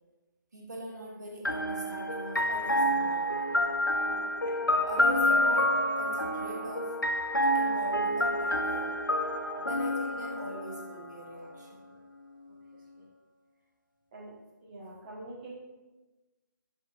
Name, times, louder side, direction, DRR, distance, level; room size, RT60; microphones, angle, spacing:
voice 1, 0.5-3.6 4.5-7.0 7.4-8.9 9.6-11.8, equal, 60° right, -2 dB, 1.9 m, -41 dB
sound 1, 1.4-11.2, equal, 85° left, 0.7 m, -28 dB
voice 2, 4.0-4.3 9.5-9.8 12.5-12.6 13.0-13.1 14.1-14.3 14.6-15.5, right 2 dB, 30° right, -6 dB, 1.4 m, -46 dB
13.0 x 5.5 x 2.6 m, 1.2 s
figure-of-eight pair, 145°, 11 cm